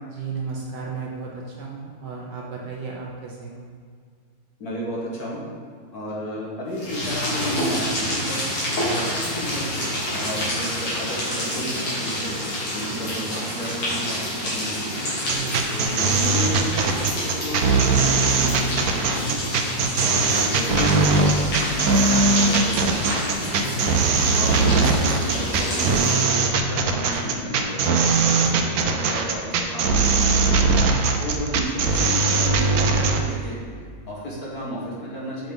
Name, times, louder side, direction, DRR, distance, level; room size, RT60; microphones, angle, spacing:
voice 1, 0.1-3.6 13.0-13.1 15.3-15.6 19.7-20.1 23.8-24.2 28.2-28.7 30.7-31.1, right 5 dB, 60° right, -2 dB, 1.3 m, -34 dB
voice 2, 4.6-5.4 5.9-8.4 8.7-9.8 10.1-12.3 12.7-15.0 15.7-19.4 20.0-23.5 24.3-28.0 28.3-30.6 31.2-33.6 34.1-35.5, equal, 50° left, -4 dB, 1.7 m, -32 dB
sound 1, 6.7-26.4, equal, 75° left, 3.0 m, -28 dB
sound 2, 15.2-33.2, right 4 dB, 80° right, 0.8 m, -20 dB
7.5 x 6.3 x 3.8 m, 2.1 s
omnidirectional pair, 2.4 m